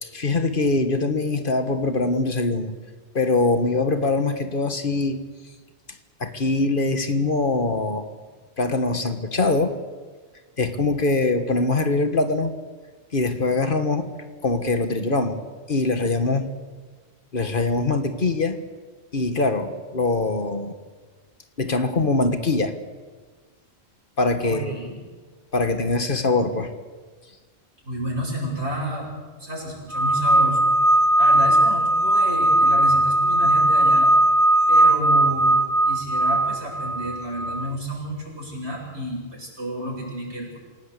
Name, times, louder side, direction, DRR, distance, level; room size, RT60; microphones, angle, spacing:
voice 1, 0.0-2.7 3.1-5.2 6.2-8.1 8.6-9.8 10.6-12.5 13.1-14.1 14.4-15.4 15.7-16.5 17.3-18.6 19.1-20.7 21.6-22.7 24.2-24.7 25.5-26.7, left 3 dB, 50° left, 8 dB, 1.7 m, -23 dB
voice 2, 24.4-25.0 27.8-29.1 29.4-30.7 31.2-34.2 34.7-35.6 35.9-40.6, right 1 dB, 80° right, -2 dB, 7.7 m, -31 dB
sound 1, 29.9-37.7, right 1 dB, 5° left, 0.8 m, -18 dB
27.5 x 17.0 x 8.4 m, 1.5 s
omnidirectional pair, 1.1 m